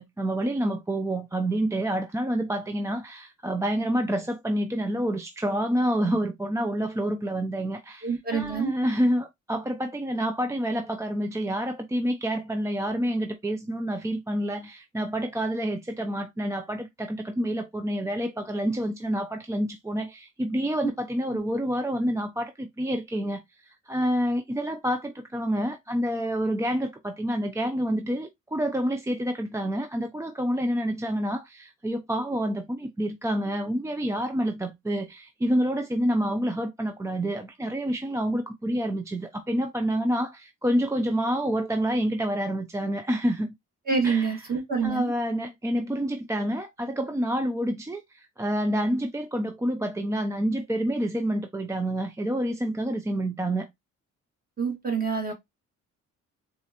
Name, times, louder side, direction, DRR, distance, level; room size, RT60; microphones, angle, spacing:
voice 1, 0.0-43.5 44.0-44.4 44.8-53.7, equal, 10° right, 0.4 m, -28 dB
voice 2, 8.0-8.7 43.9-45.1 54.6-55.3, right 5 dB, 30° right, 1.6 m, -26 dB
4.1 x 2.4 x 2.7 m
cardioid pair, 90°, 30 cm